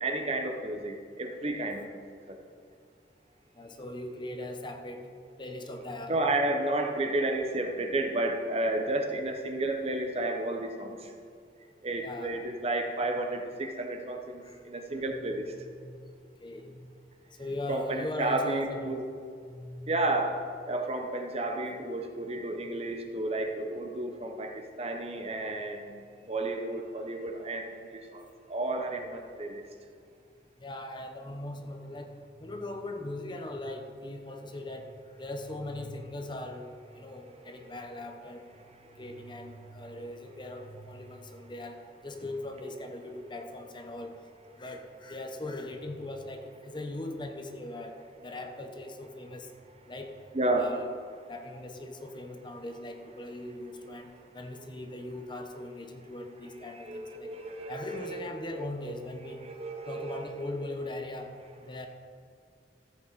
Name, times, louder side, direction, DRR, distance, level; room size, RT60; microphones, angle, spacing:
voice 1, 0.0-2.0 2.3-2.4 6.1-11.1 11.8-15.5 17.7-19.0 19.9-29.7 37.6-37.7 50.3-50.7 56.8-58.3 59.4-60.2, right 2 dB, 35° right, 4 dB, 1.0 m, -32 dB
voice 2, 3.5-5.1 5.4-6.1 12.0-12.4 14.4-14.6 15.0-15.2 15.6-16.1 16.4-16.9 17.4-19.0 19.4-20.0 30.6-36.6 37.0-38.4 38.8-44.2 44.6-48.0 48.2-49.5 49.9-50.1 50.6-50.9 51.3-57.3 57.7-59.4 59.8-61.3 61.6-61.9, left 1 dB, 25° left, 4 dB, 0.9 m, -40 dB
15.0 x 8.4 x 4.1 m, 2.3 s
head